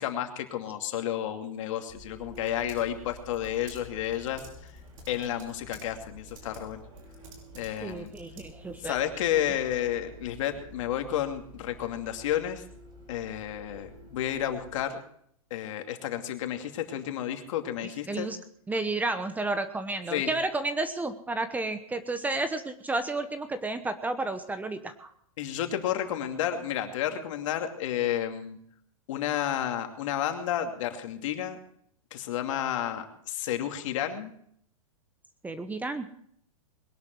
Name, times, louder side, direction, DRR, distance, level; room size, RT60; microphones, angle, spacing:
voice 1, 0.0-4.7 5.1-6.8 7.5-8.1 8.8-12.6 13.1-15.0 15.5-18.3 20.1-20.3 25.4-28.6 29.1-31.6 32.1-34.3, left 11 dB, 60° left, 5 dB, 2.6 m, -31 dB
Typing, 1.4-8.9, right 3 dB, 70° right, 5.6 m, -53 dB
Bus, 1.9-14.8, equal, 25° right, 7.8 m, -50 dB
voice 2, 7.8-8.9 18.1-18.4 18.7-25.1 35.4-36.1, right 2 dB, 10° right, 10 dB, 1.0 m, -31 dB
21.5 x 11.5 x 4.6 m, 0.66 s
hypercardioid pair, 130°, 18 cm